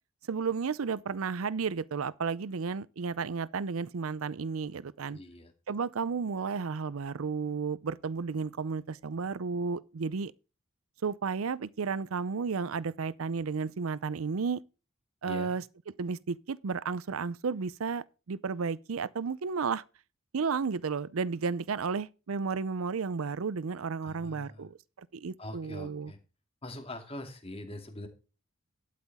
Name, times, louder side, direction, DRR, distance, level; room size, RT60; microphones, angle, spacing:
voice 1, 0.3-5.2 5.7-10.3 11.0-14.6 15.2-15.6 16.0-19.8 20.3-26.1, right 5 dB, 85° right, 0.5 m, -33 dB
voice 2, 5.1-5.8 15.2-15.6 24.0-24.7 25.4-26.2 26.6-28.1, left 1 dB, 30° left, 2.5 m, -43 dB
12.0 x 8.5 x 3.6 m
head